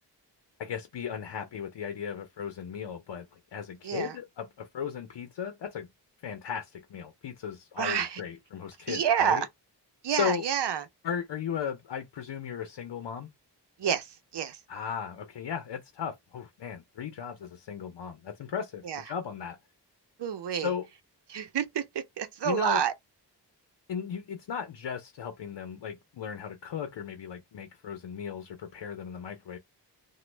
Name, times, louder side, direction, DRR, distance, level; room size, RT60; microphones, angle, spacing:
voice 1, 0.6-5.9 6.2-9.4 10.1-10.4 11.0-13.3 14.7-19.6 20.5-20.9 22.4-22.8 23.9-29.6, left 7 dB, 75° left, 0.7 m, -36 dB
voice 2, 3.8-4.2 7.8-8.2 8.9-9.5 10.0-10.9 13.8-14.6 18.8-19.0 20.2-20.7 21.3-22.9, right 8 dB, 75° right, 0.8 m, -29 dB
3.0 x 2.3 x 3.3 m
cardioid pair, 70°, 42 cm